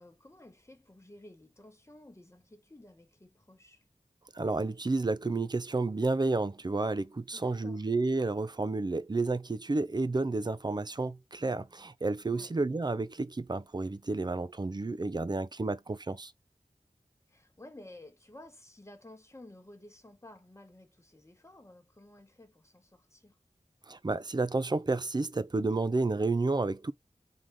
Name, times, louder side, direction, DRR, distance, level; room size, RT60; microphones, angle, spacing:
voice 1, 0.0-3.9 7.3-7.8 12.3-12.5 17.3-23.4, left 1 dB, 20° left, 1.2 m, -53 dB
voice 2, 4.3-16.3 23.9-26.9, right 3 dB, 35° right, 0.5 m, -31 dB
3.8 x 3.0 x 3.5 m
wide cardioid pair, 50°, 13 cm